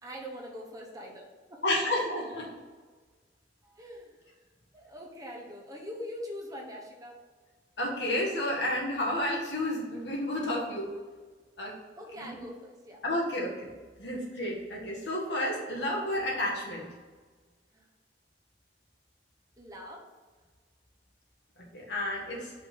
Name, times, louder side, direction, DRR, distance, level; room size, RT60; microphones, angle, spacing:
voice 1, 0.0-1.6 3.6-4.4 4.7-7.2 11.9-13.0 17.7-17.9 19.6-20.1, equal, 20° right, -1 dB, 1.0 m, -43 dB
voice 2, 1.6-2.5 7.8-10.9 11.6-11.8 12.2-12.4 13.0-13.7 14.0-16.9 21.7-22.5, left 1 dB, 70° left, -3 dB, 1.8 m, -31 dB
5.5 x 3.9 x 6.0 m, 1.4 s
head